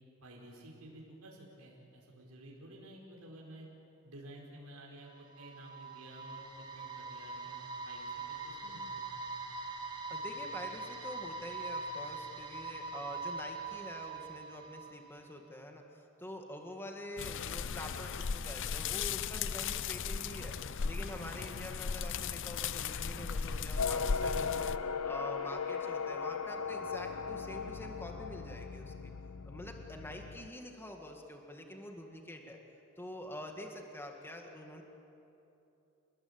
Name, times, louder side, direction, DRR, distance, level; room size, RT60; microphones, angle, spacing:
voice 1, 0.2-3.7 4.0-9.0 24.2-24.6, right 1 dB, 80° right, -3 dB, 4.8 m, -52 dB
sound 1, 5.1-15.2, right 3 dB, 20° right, 2.3 m, -42 dB
voice 2, 10.1-20.6 20.8-24.7 25.0-29.1 29.5-32.6 33.0-34.8, left 1 dB, 10° left, 2 dB, 2.0 m, -46 dB
sound 2, 17.2-24.8, left 6 dB, 60° left, 0.6 m, -36 dB
sound 3, 23.8-30.5, left 5 dB, 90° left, 0.9 m, -38 dB
28.5 x 20.5 x 8.9 m, 2.9 s
head